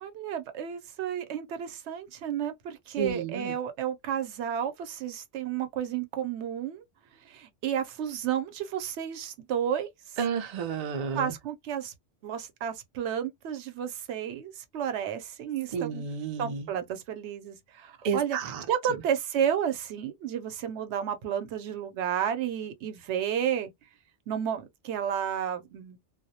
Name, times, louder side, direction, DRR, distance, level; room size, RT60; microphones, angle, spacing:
voice 1, 0.0-6.8 7.3-9.9 11.1-11.9 12.2-16.0 16.4-18.4 18.7-23.7 24.3-26.0, right 9 dB, 75° right, 0.8 m, -32 dB
voice 2, 3.0-3.5 10.2-11.3 15.7-16.7 18.0-18.6, right 6 dB, 50° right, 0.4 m, -31 dB
2.2 x 2.0 x 2.7 m
omnidirectional pair, 1.2 m